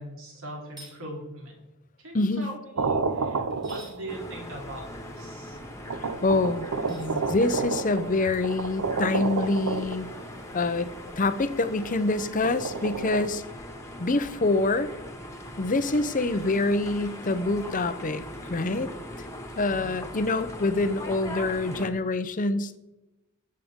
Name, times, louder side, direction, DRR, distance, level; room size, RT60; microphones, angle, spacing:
voice 1, 0.0-1.6 2.0-4.8 5.1-5.6, right 1 dB, 65° right, -2 dB, 4.0 m, -40 dB
sound 1, 0.7-1.0 3.5-4.0 6.8-7.1, right 2 dB, 20° right, 3.4 m, -48 dB
voice 2, 2.1-2.5 6.2-10.1 10.5-10.9 11.2-13.4 14.0-14.9 15.6-18.2 18.5-18.9 19.6-22.8, left 2 dB, 35° left, 11 dB, 0.7 m, -26 dB
sound 2, 2.8-4.3 5.2-5.3 5.9-10.4 12.2-13.3, right 4 dB, 90° right, 0.7 m, -30 dB
sound 3, 4.1-21.9, left 1 dB, 15° left, 1.6 m, -41 dB
20.0 x 7.6 x 3.7 m, 0.98 s
head